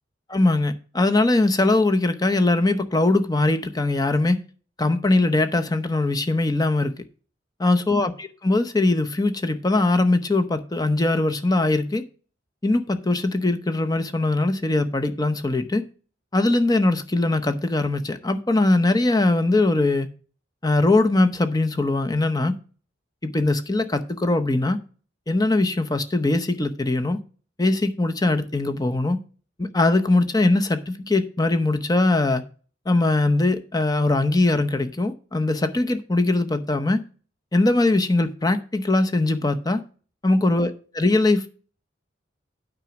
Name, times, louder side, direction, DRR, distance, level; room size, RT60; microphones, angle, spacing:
voice 1, 0.3-4.4 4.8-6.9 7.6-12.0 12.6-15.8 16.3-20.1 20.6-22.6 23.2-24.8 25.3-27.2 27.6-29.2 29.6-32.4 32.9-37.0 37.5-39.8 40.2-41.5, left 2 dB, 20° left, 0.8 m, -21 dB
8.9 x 5.2 x 5.8 m
head